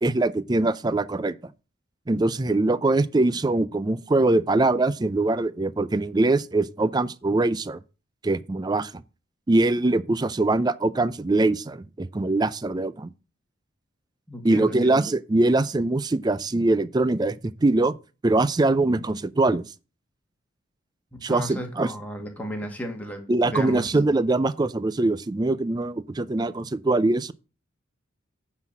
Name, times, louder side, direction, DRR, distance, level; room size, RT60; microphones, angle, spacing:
voice 1, 0.0-1.4 2.1-7.8 8.2-9.0 9.5-13.1 14.4-18.0 18.2-19.7 21.2-21.9 22.2-22.3 23.3-27.3, right 2 dB, 20° right, 0.4 m, -23 dB
voice 2, 14.3-14.9 21.1-23.9, equal, 5° left, 1.8 m, -34 dB
9.6 x 4.2 x 6.0 m
head